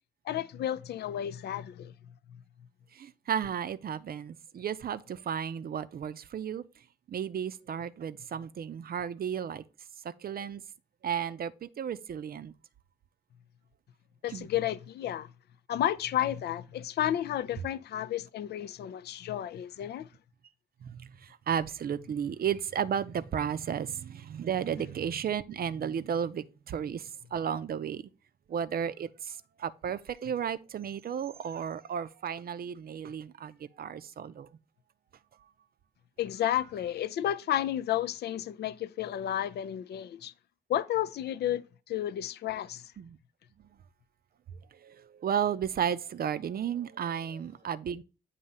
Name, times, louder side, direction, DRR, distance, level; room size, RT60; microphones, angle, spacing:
voice 1, 0.3-1.9 14.2-15.3 15.7-20.1 36.2-40.3 40.7-42.9, left 11 dB, 60° left, 0.4 m, -32 dB
voice 2, 2.9-6.6 7.1-9.6 10.0-10.6 11.0-12.5 14.3-14.5 20.8-28.0 28.5-34.5 43.0-43.2 43.6-43.7 44.7-48.0, right 8 dB, 50° right, 0.5 m, -33 dB
8.2 x 2.7 x 5.4 m
hypercardioid pair, 45°, 19 cm